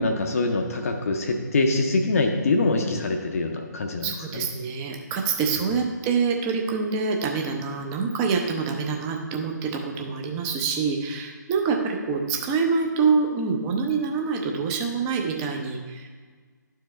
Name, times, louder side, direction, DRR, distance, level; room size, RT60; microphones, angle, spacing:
voice 1, 0.0-4.5, left 3 dB, 50° left, 4 dB, 0.6 m, -24 dB
voice 2, 4.0-16.1, right 5 dB, 15° right, 2 dB, 0.6 m, -26 dB
12.0 x 4.7 x 3.2 m, 1.5 s
figure-of-eight pair, 140°, 10 cm